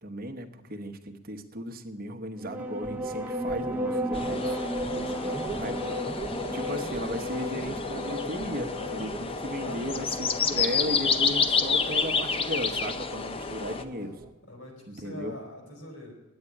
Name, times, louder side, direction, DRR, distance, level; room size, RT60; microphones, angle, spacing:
voice 1, 0.0-4.6 5.6-5.7 6.5-14.2 14.9-15.3, equal, 40° right, 6 dB, 1.0 m, -36 dB
sound 1, 2.4-14.3, equal, 10° right, 0.8 m, -35 dB
sound 2, 4.1-13.8, left 5 dB, 25° left, 0.5 m, -30 dB
voice 2, 4.9-5.6 9.6-10.1 14.5-16.1, left 1 dB, 65° left, 1 dB, 4.3 m, -44 dB
10.5 x 8.9 x 9.7 m, 1.2 s
head